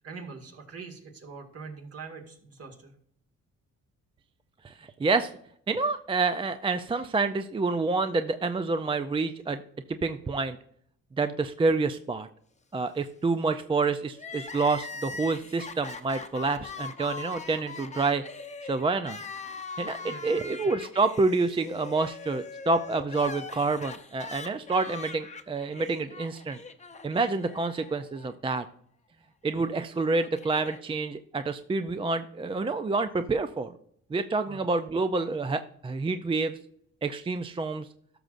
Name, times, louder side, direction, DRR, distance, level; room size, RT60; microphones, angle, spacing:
voice 1, 0.0-2.9 20.0-20.5 34.5-34.6, right 5 dB, 50° right, 3 dB, 2.0 m, -43 dB
voice 2, 4.6-5.3 5.7-9.6 9.9-10.6 11.2-12.3 12.7-18.2 18.6-19.2 19.8-26.6 27.0-28.7 29.4-33.7 34.1-36.6 37.0-37.9, right 3 dB, 20° right, 9 dB, 0.4 m, -28 dB
Crying sobbing, 14.1-28.3 28.6-28.7 29.7-30.8, left 4 dB, 25° left, 0.8 m, -42 dB
13.0 x 6.2 x 2.5 m, 0.65 s
cardioid pair, 90°, 30 cm